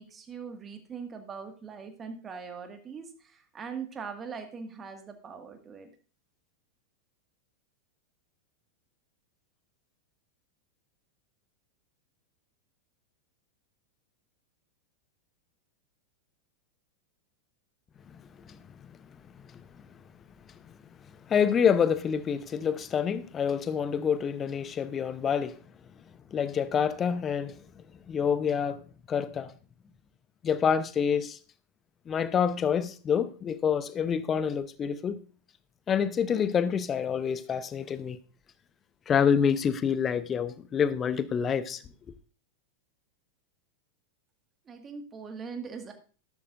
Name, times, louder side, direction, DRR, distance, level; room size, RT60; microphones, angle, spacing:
voice 1, 0.0-5.9 44.7-45.9, right 5 dB, 20° right, 1.9 m, -41 dB
voice 2, 21.3-25.6 26.3-27.6 28.1-28.8 29.1-29.5 30.4-31.4 32.1-35.2 35.9-38.2 39.1-41.8, left 7 dB, 25° left, 0.8 m, -27 dB
13.0 x 12.0 x 2.6 m
figure-of-eight pair, 90°, 0 cm